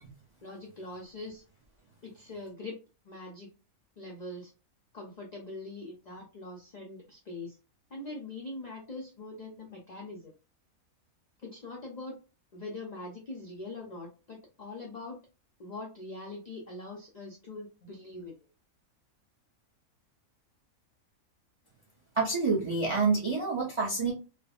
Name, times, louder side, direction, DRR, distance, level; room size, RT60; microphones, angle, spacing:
voice 1, 0.4-1.4 2.0-3.5 4.0-4.5 4.9-7.6 7.9-10.3 11.4-12.2 12.5-15.2 15.6-18.5, left 2 dB, 75° left, -2 dB, 0.3 m, -43 dB
voice 2, 22.2-24.1, right 4 dB, 50° right, -2 dB, 0.3 m, -27 dB
3.2 x 2.0 x 2.3 m, 0.32 s
omnidirectional pair, 1.5 m